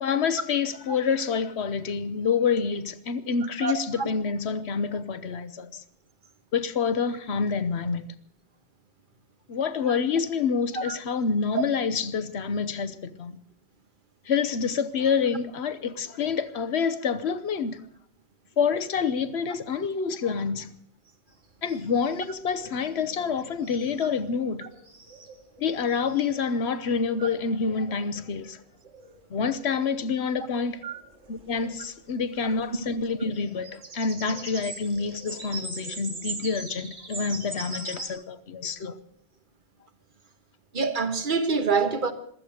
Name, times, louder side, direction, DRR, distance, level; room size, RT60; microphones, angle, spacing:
voice 1, 0.0-5.8 6.5-8.1 9.5-13.4 14.3-17.8 18.6-20.7 21.6-24.7 25.6-28.6 29.3-30.8 31.3-39.0, left 5 dB, 70° left, 1.1 m, -27 dB
voice 2, 3.6-4.1 10.7-11.0 30.8-31.0 40.7-42.1, right 4 dB, 50° right, 1.4 m, -26 dB
sound 1, 21.3-21.4 21.7-22.4 22.8-38.1, right 3 dB, 85° right, 2.4 m, -42 dB
15.5 x 13.0 x 6.4 m
omnidirectional pair, 1.1 m